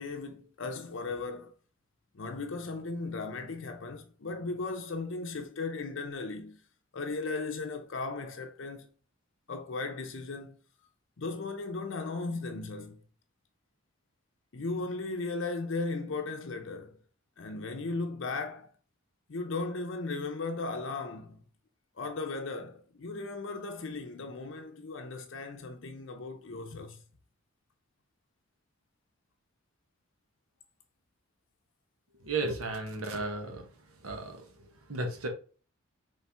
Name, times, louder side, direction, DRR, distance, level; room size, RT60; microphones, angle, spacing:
voice 1, 0.0-1.5 2.1-6.6 6.9-8.9 9.5-10.6 11.2-13.0 14.5-17.0 17.4-18.7 19.3-21.4 22.0-27.0, left 3 dB, 60° left, 0.6 m, -36 dB
voice 2, 32.2-35.3, right 3 dB, 90° right, 1.0 m, -35 dB
4.3 x 3.3 x 3.4 m
head